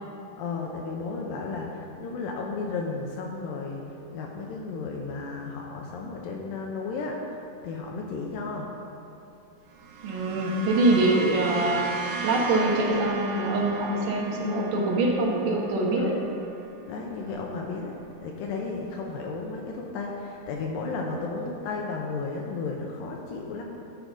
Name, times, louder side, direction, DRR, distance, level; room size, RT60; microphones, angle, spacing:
voice 1, 0.4-3.8 4.1-7.2 7.6-8.7 11.2-11.5 13.6-13.7 16.0-16.3 16.9-23.6, left 4 dB, 80° left, 0 dB, 2.2 m, -34 dB
sound 1, 9.7-18.2, right 3 dB, 85° right, 2.8 m, -37 dB
voice 2, 10.0-11.9 12.2-16.1, right 2 dB, 65° right, -1 dB, 2.4 m, -24 dB
12.5 x 4.7 x 5.2 m, 2.8 s
omnidirectional pair, 4.5 m